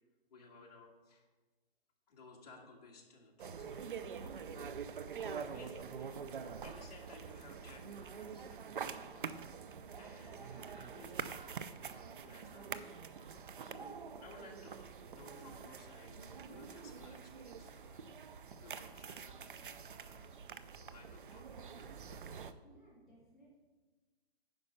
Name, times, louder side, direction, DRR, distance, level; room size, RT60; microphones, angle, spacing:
voice 1, 0.3-1.3 2.1-12.7 13.3-19.6 19.9-21.9, left 2 dB, 40° left, -1 dB, 2.0 m, -59 dB
sound 1, 3.4-22.5, right 6 dB, 55° right, 0.6 m, -46 dB
voice 2, 22.5-23.5, right 2 dB, ahead, -14 dB, 3.2 m, -62 dB
9.9 x 5.4 x 5.7 m, 1.2 s
hypercardioid pair, 170°, 31 cm